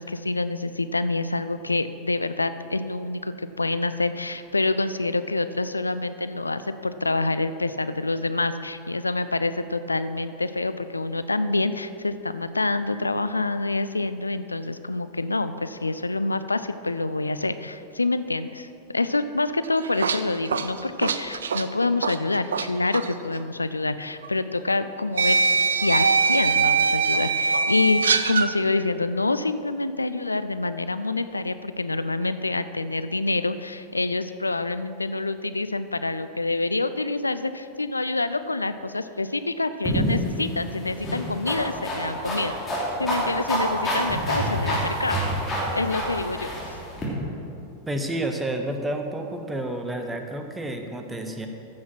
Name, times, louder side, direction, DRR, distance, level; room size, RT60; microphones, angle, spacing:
voice 1, 0.0-18.7 18.9-25.4 25.7-42.5 43.0-45.2 45.7-46.5, left 2 dB, 80° left, 12 dB, 0.3 m, -27 dB
sound 1, 19.6-22.7 22.9-23.1 24.2-24.3 25.2-28.5, right 4 dB, 70° right, 0.5 m, -22 dB
sound 2, 39.8-47.1, equal, 20° left, 3.0 m, -28 dB
voice 2, 47.9-51.5, right 1 dB, 10° right, 5 dB, 1.1 m, -30 dB
14.5 x 6.3 x 6.0 m, 2.8 s
figure-of-eight pair, 90°, 0 cm